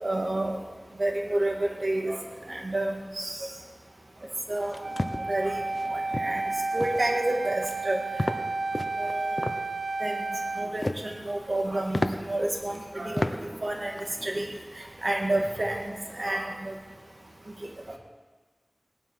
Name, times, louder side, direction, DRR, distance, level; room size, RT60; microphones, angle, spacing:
voice 1, 0.0-0.6 1.0-2.2 2.5-3.4 4.5-4.8 5.3-5.6 5.9-6.4 6.7-8.0 9.0-9.3 10.0-10.2 10.6-13.9 14.2-14.5 15.0-15.8 16.1-16.7 17.9-18.0, right 1 dB, 65° right, 1 dB, 2.1 m, -29 dB
sound 1, 4.6-5.2 5.7-5.9 6.1-6.4 6.8-7.1 7.4-7.8 8.2-8.4 8.7-9.6 10.5-11.1 11.5-11.6 11.9-12.1 12.7-12.8 13.2-13.3 13.7-14.1, left 1 dB, 45° left, 0.9 m, -31 dB
Wind instrument woodwind instrument, 4.8-10.7, right 3 dB, 80° right, 0.7 m, -31 dB
18.5 x 10.5 x 5.6 m, 1.4 s
wide cardioid pair, 55°, 0 cm